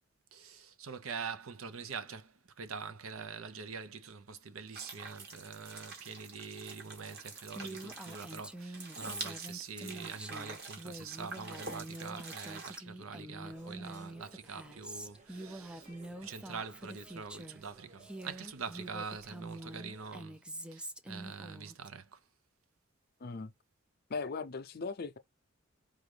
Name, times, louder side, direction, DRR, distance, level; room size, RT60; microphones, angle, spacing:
voice 1, 0.3-15.9 16.2-22.2, right 5 dB, 85° right, 0.7 m, -45 dB
sound 1, 4.7-12.8, right 3 dB, 50° right, 1.8 m, -46 dB
Female speech woman speaking, 7.5-17.6 18.0-21.9, right 1 dB, 5° right, 0.3 m, -46 dB
sound 2, 13.5-20.2, right 2 dB, 35° right, 1.6 m, -59 dB
voice 2, 23.2-23.5 24.1-25.2, left 4 dB, 50° left, 0.5 m, -38 dB
4.9 x 2.5 x 3.3 m
head